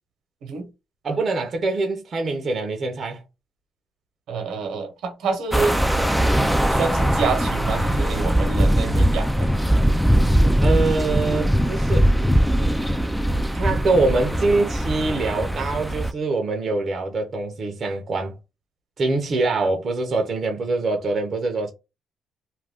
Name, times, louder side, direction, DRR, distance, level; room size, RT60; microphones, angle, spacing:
voice 1, 1.0-3.2 10.6-12.1 13.5-18.3 19.0-21.7, right 3 dB, 45° right, 0.6 m, -24 dB
voice 2, 4.3-5.8 6.7-9.5 14.0-14.2, right 4 dB, 80° right, 1.0 m, -27 dB
sound 1, 5.5-16.1, equal, ahead, 0.4 m, -20 dB
2.4 x 2.2 x 3.4 m
cardioid pair, 90°, 0 cm